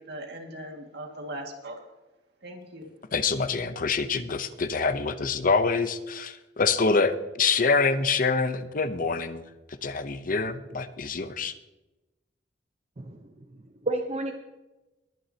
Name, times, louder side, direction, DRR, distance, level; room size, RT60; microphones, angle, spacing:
voice 1, 0.0-1.8 2.4-2.9, right 1 dB, 65° right, 2 dB, 2.1 m, -39 dB
voice 2, 3.1-9.4 9.7-11.5, left 4 dB, 50° left, 11 dB, 0.8 m, -26 dB
voice 3, 13.0-14.3, right 2 dB, 40° right, 3 dB, 0.9 m, -32 dB
21.0 x 9.3 x 2.9 m, 1.0 s
head